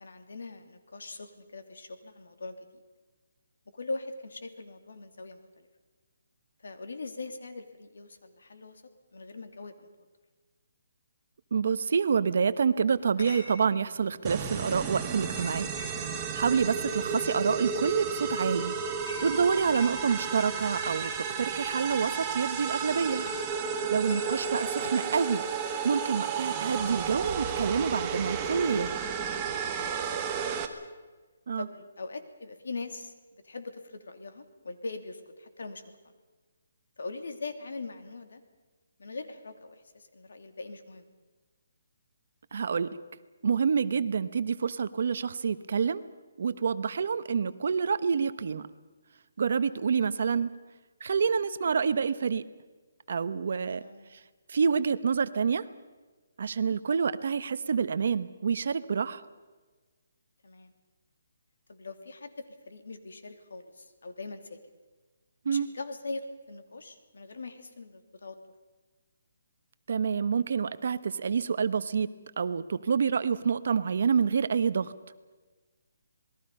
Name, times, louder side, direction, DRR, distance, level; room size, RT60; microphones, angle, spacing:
voice 1, 0.0-2.8 3.7-5.7 6.6-8.8 9.1-9.9 16.9-17.1 23.6-23.9 30.1-30.7 31.6-35.8 37.0-38.4 39.0-41.1 47.3-47.6 49.7-50.0 53.8-54.2 60.4-60.7 61.7-64.6 65.5-68.4, left 3 dB, 75° left, 8 dB, 2.8 m, -42 dB
voice 2, 11.5-15.7 16.2-18.7 19.2-23.2 23.9-25.4 25.8-28.9 31.5-31.7 42.5-43.0 43.4-46.0 46.4-48.7 49.4-50.5 51.0-52.4 53.1-53.8 54.5-55.6 56.4-59.2 65.4-65.7 69.9-72.1 72.4-74.9, right 6 dB, 50° right, 14 dB, 1.0 m, -27 dB
Chatter / Chink clink, 13.0-24.7, left 1 dB, 40° left, 6.4 m, -49 dB
sound 1, 14.2-30.7, right 6 dB, 15° right, 1.3 m, -33 dB
27.5 x 20.5 x 5.5 m, 1.3 s
hypercardioid pair, 175°, 0 cm